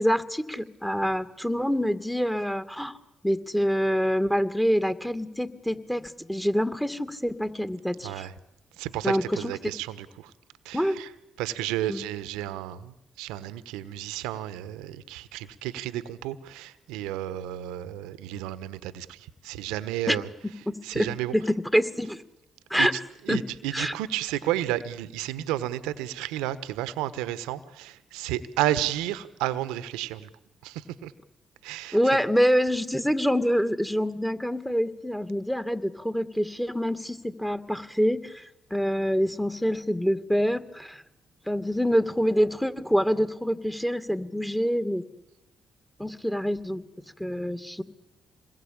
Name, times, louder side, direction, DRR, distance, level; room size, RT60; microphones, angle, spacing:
voice 1, 0.0-3.0 3.2-8.3 9.0-9.5 10.7-11.0 11.9-12.0 20.1-20.2 20.7-21.1 21.3-22.2 22.7-22.9 23.3-23.4 23.7-24.0 31.9-41.0 41.5-45.0 46.0-46.8 47.2-47.8, equal, 5° left, 9 dB, 2.3 m, -26 dB
voice 2, 8.8-10.3 10.6-11.1 11.4-20.3 20.8-21.3 22.8-22.9 23.3-30.3 30.6-31.1 31.6-32.0, right 13 dB, 85° right, 14 dB, 1.2 m, -32 dB
27.5 x 21.0 x 8.8 m, 0.87 s
hypercardioid pair, 50°, 0 cm